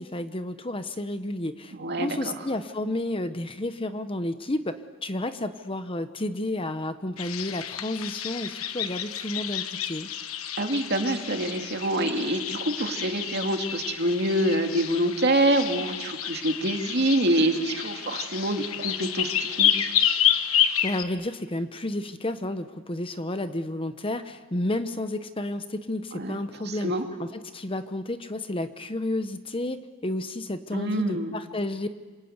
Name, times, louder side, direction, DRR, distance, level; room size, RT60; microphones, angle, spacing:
voice 1, 0.0-10.1 20.8-26.9 27.2-31.9, left 1 dB, 25° left, 10 dB, 1.0 m, -31 dB
voice 2, 1.7-2.3 10.5-19.9 26.1-26.4 26.7-27.1 30.7-31.3, right 1 dB, 50° right, 4 dB, 2.5 m, -26 dB
sound 1, 7.2-21.0, left 10 dB, 90° left, 1.3 m, -29 dB
27.0 x 27.0 x 8.1 m, 1.4 s
head